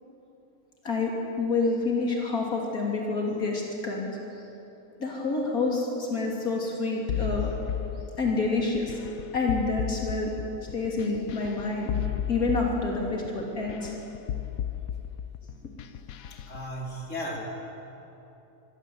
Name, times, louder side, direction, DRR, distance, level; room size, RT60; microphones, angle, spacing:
voice 1, 0.8-4.1 5.0-7.5 8.2-9.0 9.3-10.3 10.7-11.9 12.3-13.9, left 3 dB, 90° left, -2 dB, 3.5 m, -28 dB
sound 1, 7.1-16.6, left 10 dB, 75° left, 1.2 m, -34 dB
voice 2, 16.3-17.4, equal, 60° left, -2 dB, 4.1 m, -36 dB
25.5 x 20.5 x 8.0 m, 3.0 s
omnidirectional pair, 1.5 m